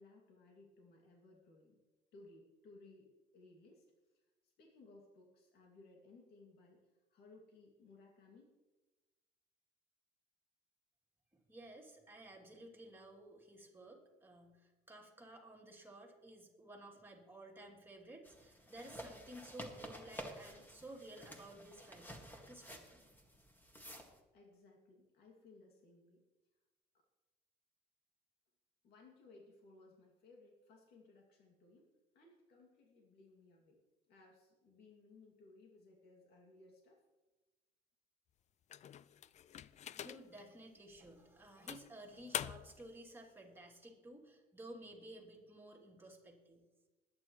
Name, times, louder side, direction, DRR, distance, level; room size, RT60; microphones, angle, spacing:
voice 1, 0.0-1.8 2.1-3.8 4.1-4.2 4.6-6.8 7.1-8.5 20.5-20.6 24.3-26.2 28.8-31.9 32.1-33.8 34.1-37.0, left 3 dB, 70° left, -1 dB, 2.5 m, -62 dB
voice 2, 11.5-23.0 40.0-46.6, right 1 dB, 10° right, -2 dB, 3.0 m, -54 dB
sound 1, 18.2-24.2, equal, 10° left, 2.0 m, -52 dB
sound 2, 38.7-40.4 41.0-41.1 41.7-42.9, left 10 dB, 45° left, 0.4 m, -45 dB
21.0 x 9.5 x 3.2 m, 1.1 s
cardioid pair, 110°, 17 cm